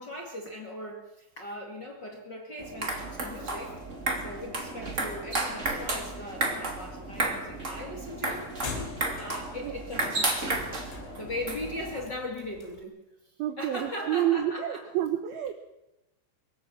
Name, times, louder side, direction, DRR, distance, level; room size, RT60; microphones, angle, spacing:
voice 1, 0.0-3.7 4.2-8.5 9.1-10.7 11.0-12.9 13.6-14.9, left 1 dB, 35° left, 0 dB, 1.9 m, -39 dB
sound 1, 2.6-12.0, right 2 dB, 25° right, 1.6 m, -33 dB
sound 2, 6.9-12.8, left 5 dB, 90° left, 6.5 m, -44 dB
voice 2, 13.4-15.5, right 12 dB, 85° right, 9 dB, 2.1 m, -29 dB
23.5 x 15.5 x 7.2 m, 0.94 s
omnidirectional pair, 5.8 m